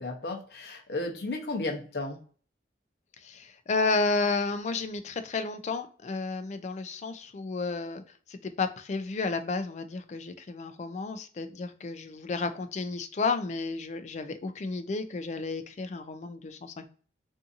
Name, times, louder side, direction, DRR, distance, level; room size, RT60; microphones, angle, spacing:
voice 1, 0.0-2.2, left 2 dB, 65° left, 1 dB, 0.7 m, -34 dB
voice 2, 3.2-8.0 8.3-16.9, left 3 dB, 40° left, 9 dB, 0.3 m, -32 dB
2.6 x 2.6 x 2.4 m, 0.42 s
head